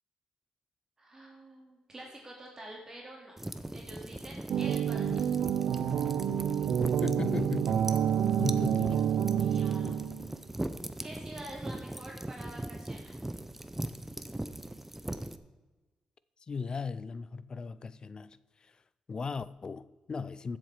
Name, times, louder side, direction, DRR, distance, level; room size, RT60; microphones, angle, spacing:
voice 1, 1.0-3.4 3.7-5.2 9.3-10.0 11.0-13.1, right 1 dB, 25° right, 2.6 m, -47 dB
sound 1, 3.4-15.4, right 1 dB, 10° right, 0.7 m, -40 dB
sound 2, 4.5-10.3, right 9 dB, 85° right, 0.5 m, -28 dB
voice 2, 7.0-7.8 8.4-9.0 16.5-18.4 19.1-20.6, left 5 dB, 40° left, 0.5 m, -36 dB
15.0 x 7.4 x 4.9 m
cardioid pair, 110°, 2 cm